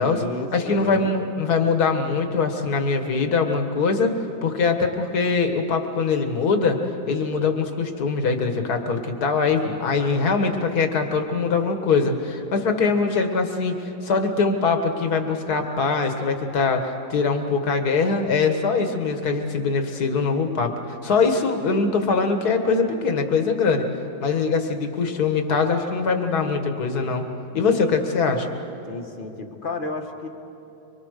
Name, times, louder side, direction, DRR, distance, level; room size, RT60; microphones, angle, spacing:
voice 1, 0.0-1.1 28.9-30.3, left 2 dB, 30° left, 4 dB, 1.5 m, -32 dB
voice 2, 0.5-4.1 4.4-6.8 7.1-13.8 14.0-20.7 21.0-23.9 24.2-27.2 27.5-28.5, left 4 dB, 50° left, 5 dB, 2.0 m, -22 dB
25.0 x 24.0 x 6.6 m, 2.8 s
omnidirectional pair, 2.2 m